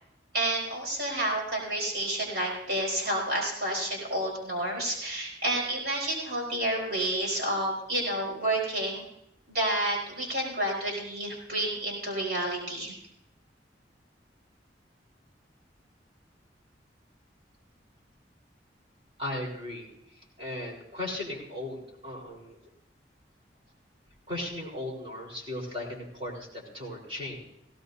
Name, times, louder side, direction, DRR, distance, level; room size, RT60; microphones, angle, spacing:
voice 1, 0.3-9.0 9.5-12.9, right 1 dB, 60° right, -2 dB, 4.4 m, -30 dB
voice 2, 19.2-19.9 20.4-22.6 24.3-27.5, left 1 dB, 30° right, -4 dB, 4.3 m, -37 dB
18.0 x 17.0 x 2.7 m, 0.80 s
head